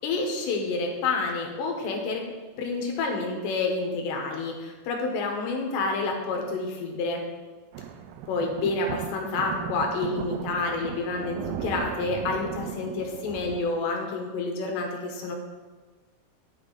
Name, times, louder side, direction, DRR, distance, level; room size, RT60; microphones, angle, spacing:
voice 1, 0.0-2.2 2.6-7.2 8.3-15.4, left 3 dB, 85° left, 1 dB, 3.5 m, -29 dB
sound 1, 7.7-13.6, right 8 dB, 85° right, 2.1 m, -36 dB
11.0 x 7.0 x 4.1 m, 1.3 s
omnidirectional pair, 4.9 m